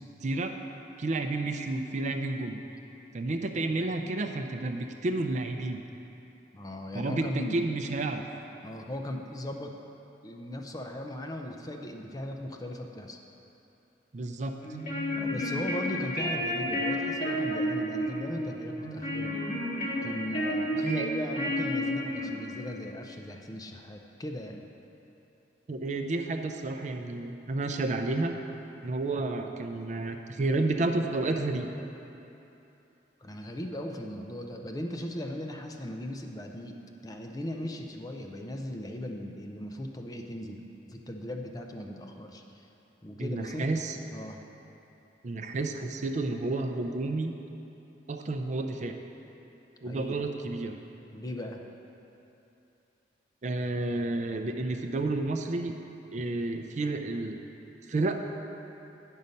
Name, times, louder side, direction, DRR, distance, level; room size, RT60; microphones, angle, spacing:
voice 1, 0.2-0.5 1.0-2.6 3.1-5.8 6.9-8.2 14.1-14.6 20.8-21.1 25.7-28.3 28.8-31.7 43.2-44.0 45.2-47.3 48.1-49.0 49.8-50.8 53.4-55.7 56.1-57.4 57.9-58.2, right 2 dB, 45° right, 5 dB, 0.4 m, -31 dB
voice 2, 6.5-7.6 8.6-9.7 10.2-13.2 15.2-19.4 20.0-24.6 33.2-36.7 37.0-42.6 43.0-43.7 44.1-44.4 49.8-50.2 51.1-51.6, left 1 dB, 20° left, 2 dB, 0.5 m, -38 dB
sound 1, 14.6-22.6, equal, 50° left, 1.8 m, -31 dB
9.4 x 5.5 x 5.2 m, 2.9 s
head